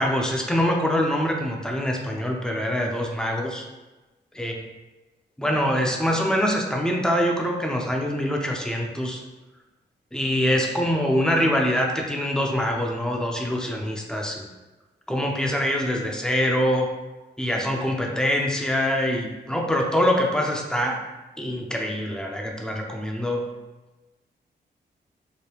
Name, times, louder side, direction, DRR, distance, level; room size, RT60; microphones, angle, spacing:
voice 1, 0.0-3.6 4.4-4.6 5.4-9.2 10.1-14.5 15.1-16.9 17.4-21.0 21.4-23.4, equal, 5° left, 1 dB, 0.6 m, -24 dB
4.9 x 2.2 x 3.0 m, 1.1 s
cardioid pair, 75°, 19 cm